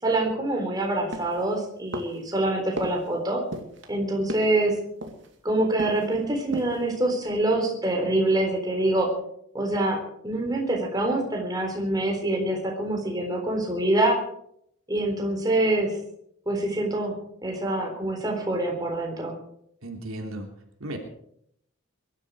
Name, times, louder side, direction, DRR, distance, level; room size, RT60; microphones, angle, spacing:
voice 1, 0.0-3.4 3.9-4.7 5.4-9.1 9.5-10.0 10.2-14.2 14.9-15.9 16.5-17.2 17.4-19.3, right 1 dB, 20° right, 0 dB, 3.9 m, -25 dB
sound 1, 1.1-1.5 1.9-2.3 2.8-3.1 3.5-3.9 4.3-4.6 5.0-5.4 5.8-6.1 6.4-6.9 7.2-7.3, right 1 dB, 60° right, 2.4 m, -36 dB
voice 2, 19.8-20.5 20.8-21.0, right 1 dB, 80° right, 3 dB, 3.1 m, -34 dB
22.5 x 12.5 x 4.9 m, 0.71 s
head